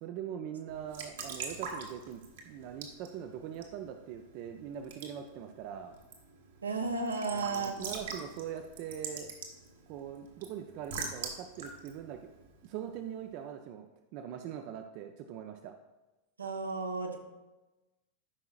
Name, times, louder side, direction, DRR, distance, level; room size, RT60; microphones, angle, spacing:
voice 1, 0.0-5.9 7.3-9.3 9.9-12.3 12.6-13.9 14.1-15.7, right 9 dB, 45° right, 6 dB, 0.5 m, -42 dB
Raindrop / Drip / Trickle dribble, 0.7-13.2, right 4 dB, 60° right, 1.4 m, -45 dB
voice 2, 6.6-7.8 16.4-17.2, right 3 dB, 75° right, 2 dB, 1.0 m, -33 dB
13.0 x 5.7 x 2.4 m, 1.1 s
figure-of-eight pair, 90°, 0 cm